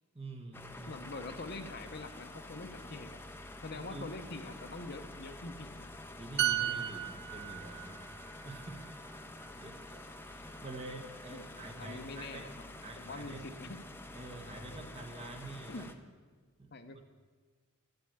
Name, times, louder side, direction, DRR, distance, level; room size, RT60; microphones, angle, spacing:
voice 1, 0.1-1.3 3.9-4.1 6.1-8.1 8.4-8.9 9.5-10.0 10.4-12.5 12.8-13.4 14.1-15.9 16.6-16.7, right 2 dB, 30° right, 4 dB, 1.3 m, -47 dB
sound 1, 0.5-15.9, left 2 dB, 10° left, 0.6 m, -48 dB
voice 2, 0.9-3.2 3.6-5.9 11.3-11.4 11.8-12.6 13.0-13.8 15.7-15.9 16.7-17.0, left 2 dB, 50° left, 8 dB, 0.8 m, -44 dB
sound 2, 6.4-10.0 10.3-10.5, right 11 dB, 55° right, 0.4 m, -36 dB
11.0 x 8.0 x 8.7 m, 1.4 s
head